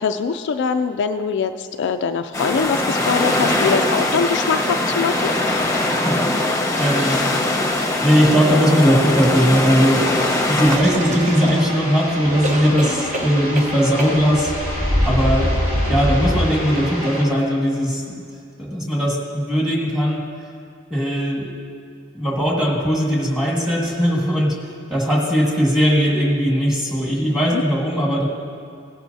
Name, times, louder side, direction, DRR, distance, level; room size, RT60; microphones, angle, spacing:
voice 1, 0.0-5.3 27.5-27.6, left 5 dB, 55° left, 8 dB, 0.3 m, -22 dB
sound 1, 2.3-10.8, left 1 dB, 15° left, 0.9 m, -21 dB
voice 2, 6.0-7.3 8.0-10.1 10.5-14.5 15.0-15.5 15.9-18.3 18.6-20.2 20.9-21.5 22.1-24.6 24.9-28.3, equal, 5° right, -3 dB, 1.7 m, -19 dB
sound 2, 9.1-12.0 12.4-13.7 14.0-14.2, right 1 dB, 35° right, 1.1 m, -29 dB
sound 3, 10.7-17.2, equal, 70° right, 2.8 m, -24 dB
17.0 x 10.5 x 2.7 m, 2.3 s
head